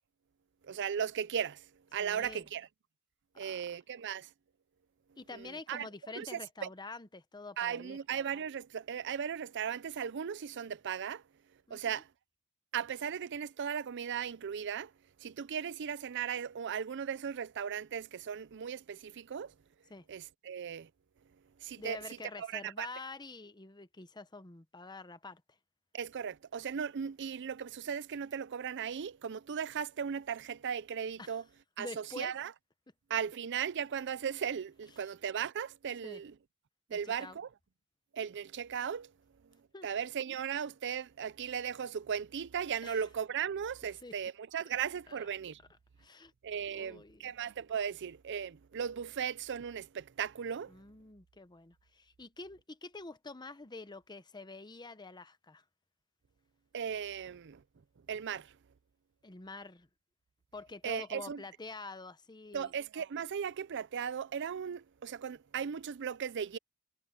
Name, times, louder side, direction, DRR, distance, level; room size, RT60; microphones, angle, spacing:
voice 1, 0.6-1.6 1.9-2.7 3.4-4.3 5.3-5.9 6.2-6.7 7.6-11.2 11.7-12.1 12.7-14.9 15.2-19.5 20.1-20.9 21.6-22.0 22.4-22.9 25.9-31.4 31.8-32.5 33.1-36.3 36.9-37.5 38.1-39.1 39.8-45.6 46.4-50.7 56.7-57.6 58.1-58.5 60.8-61.4 62.5-66.6, right 7 dB, 55° right, 0.5 m, -37 dB
voice 2, 2.0-2.5 3.3-3.6 5.2-8.0 11.7-12.0 19.9-20.0 21.8-25.4 31.2-31.4 31.8-32.3 34.9-35.1 36.0-36.2 36.9-37.4 39.7-39.9 42.8-43.0 44.0-44.2 44.6-44.8 45.1-45.3 46.0-46.3 46.7-47.3 50.7-55.6 59.2-59.9 60.5-62.7, left 3 dB, 20° left, 0.9 m, -47 dB
head